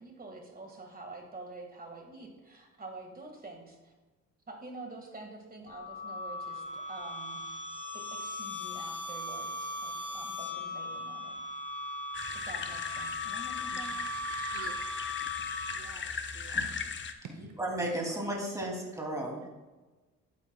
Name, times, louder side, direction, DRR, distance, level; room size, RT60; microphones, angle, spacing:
voice 1, 0.0-3.9 4.5-7.4 7.9-11.4 12.3-14.1, right 2 dB, 30° right, 2 dB, 1.9 m, -47 dB
sound 1, 5.7-16.0, left 2 dB, 25° left, 2.0 m, -38 dB
sound 2, 12.1-17.1, left 5 dB, 40° left, 0.7 m, -38 dB
voice 2, 14.3-14.7 15.7-16.7 17.2-17.3 19.2-19.5, right 6 dB, 65° right, 4 dB, 0.9 m, -48 dB
voice 3, 17.3-19.5, right 1 dB, 10° right, -2 dB, 2.7 m, -34 dB
11.0 x 9.4 x 2.3 m, 1.2 s
cardioid pair, 90°, 30 cm